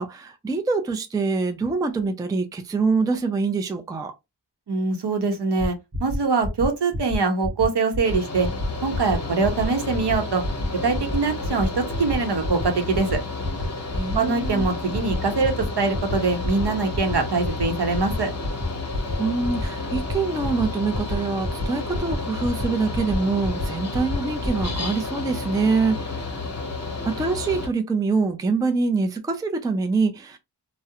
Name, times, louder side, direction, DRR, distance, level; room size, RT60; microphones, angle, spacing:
voice 1, 0.0-4.1 13.9-14.7 19.2-26.6 27.0-30.4, right 4 dB, 10° right, 0.3 m, -25 dB
voice 2, 4.7-8.5 8.8-10.4 10.8-13.2 14.1-18.3, right 4 dB, 70° right, 0.8 m, -23 dB
sound 1, 5.6-5.7 5.9-6.2 6.4-6.7 6.9-7.2 7.4-7.7 7.9-8.2 8.4-8.7 8.9-9.2 9.4-9.7 9.9-10.2 10.4-10.7 10.9-11.2 11.4-11.7 11.9-12.2 12.4-12.7 12.9-13.2 13.4-13.7 13.9-14.2 14.4-14.7 14.9-15.2 15.4-15.7 15.9-16.2 16.4-16.6 16.9-17.1 17.4-17.7 17.9-18.2 18.4-18.7 18.9-19.2 19.4-19.7 19.9-20.1 20.4-20.6 20.9-21.2 21.4-21.7 21.9-22.2 22.4-22.7 22.9-23.2 23.4-23.7 23.9-24.2 24.4-24.6, left 1 dB, 30° right, 0.7 m, -28 dB
Mechanical fan, 8.0-27.7, left 3 dB, 40° left, 0.8 m, -31 dB
2.3 x 2.1 x 2.7 m
wide cardioid pair, 80°, 43 cm